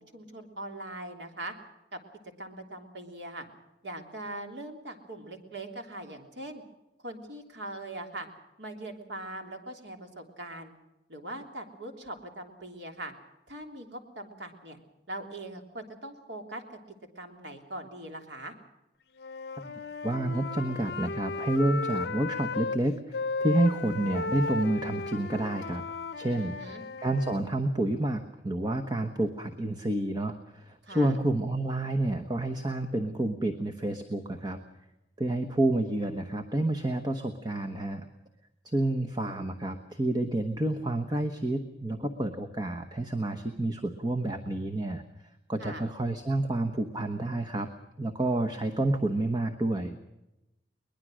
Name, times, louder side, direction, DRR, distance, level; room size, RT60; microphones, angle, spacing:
voice 1, 0.0-1.5 1.9-2.0 2.4-3.5 3.8-6.6 7.0-8.3 8.6-10.7 11.1-13.1 13.5-14.8 15.1-16.8 17.1-18.5 26.4-26.8 30.8-31.1 45.6-45.9, right 1 dB, 70° right, 4 dB, 3.3 m, -41 dB
Wind instrument woodwind instrument, 19.2-22.8 23.1-27.4, left 4 dB, 55° left, 0.8 m, -35 dB
voice 2, 20.0-25.8 26.2-34.6 35.2-38.1 38.6-45.0 45.5-47.7 48.0-50.0, right 1 dB, 20° right, 6 dB, 1.1 m, -29 dB
22.5 x 20.5 x 6.3 m, 0.94 s
head